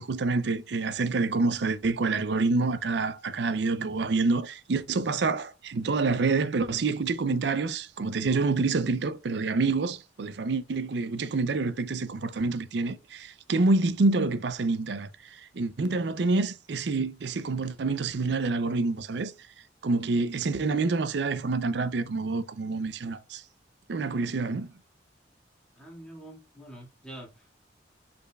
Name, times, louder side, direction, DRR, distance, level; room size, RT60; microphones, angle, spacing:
voice 1, 0.0-19.3 19.8-23.4 23.9-24.7, right 3 dB, 65° right, 0.5 m, -27 dB
voice 2, 25.8-27.7, right 1 dB, 5° left, 1.8 m, -46 dB
5.2 x 4.3 x 2.3 m
head